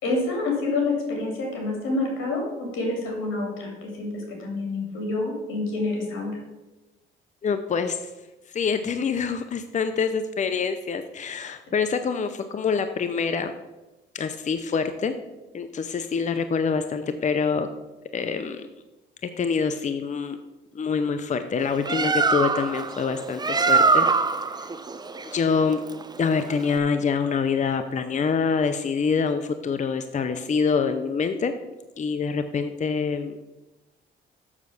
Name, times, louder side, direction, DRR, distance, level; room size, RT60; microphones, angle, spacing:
voice 1, 0.0-6.4, left 2 dB, 85° left, 1 dB, 3.2 m, -28 dB
voice 2, 7.4-8.1 8.5-13.5 14.1-15.1 15.5-17.7 18.1-18.6 19.2-20.4 20.7-24.7 25.2-25.8 26.2-31.5 32.0-33.4, left 5 dB, 35° left, 9 dB, 0.6 m, -26 dB
Bird, 21.6-26.8, right 4 dB, 20° right, 0.7 m, -24 dB
7.3 x 6.7 x 6.4 m, 1.1 s
cardioid pair, 90°, 20 cm